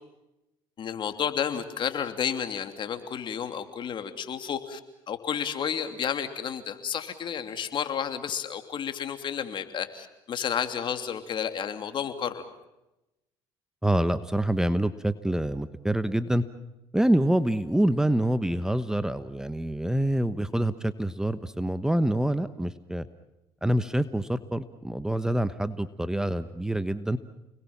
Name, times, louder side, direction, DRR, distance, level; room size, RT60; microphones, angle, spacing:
voice 1, 0.8-4.8 5.1-12.5, left 8 dB, 50° left, 8 dB, 2.9 m, -31 dB
voice 2, 13.8-16.4 16.9-23.1 23.6-27.2, right 1 dB, 5° right, 13 dB, 1.1 m, -26 dB
29.5 x 21.0 x 7.3 m, 0.94 s
supercardioid pair, 80°, 10 cm